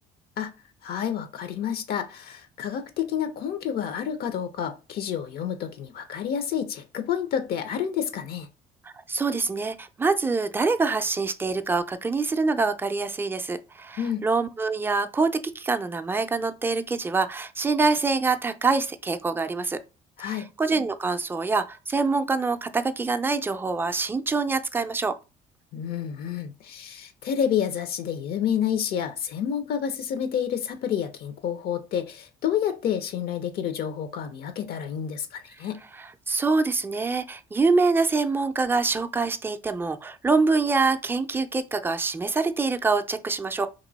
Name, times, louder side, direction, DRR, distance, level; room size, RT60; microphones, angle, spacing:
voice 1, 0.8-8.5 14.0-14.2 20.2-20.4 25.7-35.8, left 8 dB, 70° left, 0.6 m, -29 dB
voice 2, 8.8-15.3 15.6-19.8 20.2-25.2 36.3-43.7, right 4 dB, 15° right, 0.4 m, -25 dB
2.9 x 2.6 x 4.0 m
cardioid pair, 110°, 17 cm